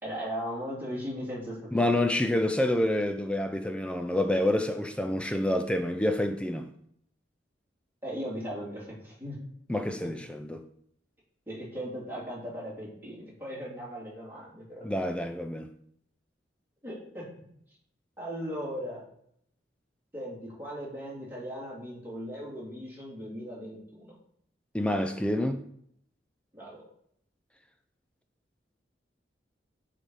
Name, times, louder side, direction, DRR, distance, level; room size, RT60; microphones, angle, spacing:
voice 1, 0.0-2.4 8.0-9.4 11.5-14.8 16.8-17.3 18.2-19.0 20.1-24.1 26.5-26.8, equal, 10° right, 3.2 m, -38 dB
voice 2, 1.7-6.7 9.7-10.6 14.8-15.7 24.7-25.6, left 1 dB, 5° left, 0.4 m, -28 dB
9.4 x 4.2 x 4.8 m
head